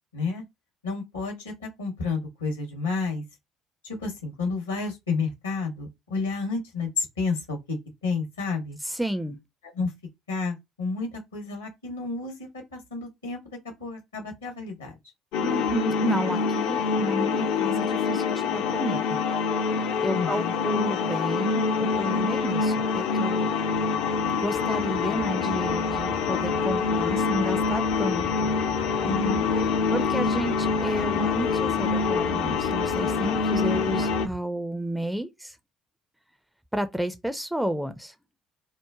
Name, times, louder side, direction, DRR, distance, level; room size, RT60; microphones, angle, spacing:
voice 1, 0.1-0.4 0.8-3.2 3.8-7.8 8.0-8.8 9.7-9.9 10.3-14.9 20.1-20.5 29.0-29.5, left 4 dB, 75° left, 0.9 m, -31 dB
voice 2, 8.9-9.4 15.4-19.2 20.0-23.5 24.4-28.5 29.9-35.5 36.7-38.1, right 1 dB, 5° right, 0.4 m, -31 dB
sound 1, 15.3-34.3, left 5 dB, 60° left, 0.4 m, -25 dB
sound 2, 21.9-34.4, right 1 dB, 60° right, 0.7 m, -41 dB
2.9 x 2.1 x 2.3 m
figure-of-eight pair, 55°, 0 cm